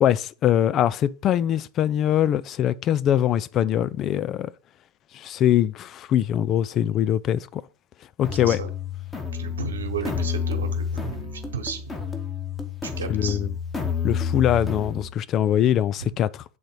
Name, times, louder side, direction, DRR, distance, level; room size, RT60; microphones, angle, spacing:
voice 1, 0.0-4.5 5.1-7.6 8.2-8.6 13.1-13.5 14.0-16.4, left 11 dB, 30° left, 0.3 m, -22 dB
sound 1, 8.2-15.1, left 6 dB, 15° left, 1.1 m, -30 dB
voice 2, 9.3-11.8 12.8-13.4, right 7 dB, 65° right, 1.3 m, -33 dB
7.7 x 3.8 x 4.7 m
figure-of-eight pair, 90°, 0 cm